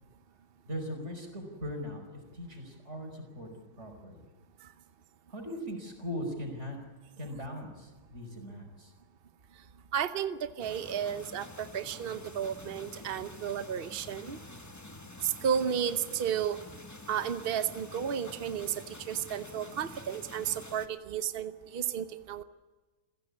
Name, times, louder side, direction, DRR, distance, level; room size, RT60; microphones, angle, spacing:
voice 1, 0.7-3.5 3.8-4.2 5.3-6.8 7.2-8.9, equal, 30° right, 4 dB, 5.4 m, -39 dB
voice 2, 9.9-14.4 15.2-16.6 17.1-22.4, right 8 dB, 85° right, 11 dB, 0.5 m, -33 dB
sound 1, 10.6-20.9, left 2 dB, 15° left, 0.7 m, -48 dB
28.0 x 16.0 x 8.5 m, 1.3 s
omnidirectional pair, 2.3 m